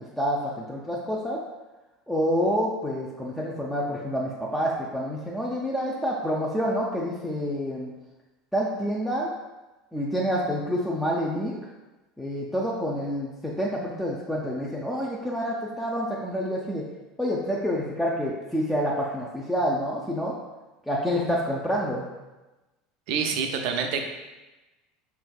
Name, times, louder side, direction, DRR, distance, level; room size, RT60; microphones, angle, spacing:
voice 1, 0.0-1.4 2.1-7.9 8.5-9.3 9.9-11.6 12.2-16.8 17.2-20.4 20.9-22.1, equal, 5° left, -5 dB, 0.5 m, -28 dB
voice 2, 23.1-24.0, right 6 dB, 55° right, 5 dB, 0.4 m, -27 dB
5.4 x 3.3 x 2.3 m, 1.1 s
figure-of-eight pair, 70°, 0 cm